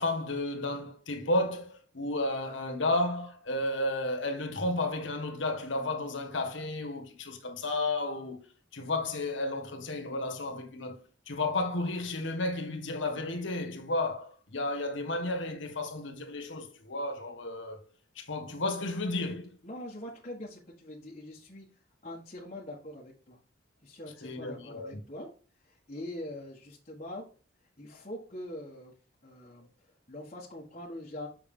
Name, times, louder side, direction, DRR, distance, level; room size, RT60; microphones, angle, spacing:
voice 1, 0.0-8.4 8.7-11.0 11.3-17.8 18.1-19.6 24.2-25.0, left 2 dB, 70° left, 1.6 m, -32 dB
voice 2, 19.6-21.7 22.0-23.4 23.8-25.3 25.6-27.2 27.8-28.9 29.2-31.3, left 1 dB, 35° left, 1.4 m, -43 dB
7.2 x 5.8 x 3.7 m
head